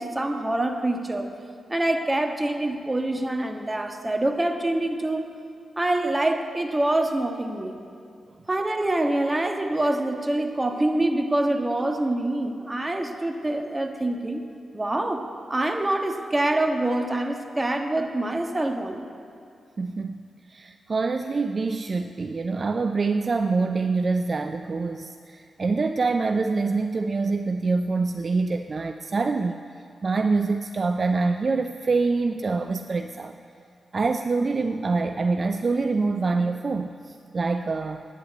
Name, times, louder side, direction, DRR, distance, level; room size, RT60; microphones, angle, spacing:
voice 1, 0.0-1.3 1.7-5.2 5.8-7.8 8.5-14.4 14.7-19.0, right 1 dB, 25° right, 5 dB, 1.5 m, -25 dB
voice 2, 19.8-20.2 20.5-29.5 30.0-33.4 33.9-38.0, right 4 dB, 50° right, 7 dB, 0.5 m, -25 dB
11.0 x 9.9 x 8.2 m, 2.4 s
supercardioid pair, 40°, 0 cm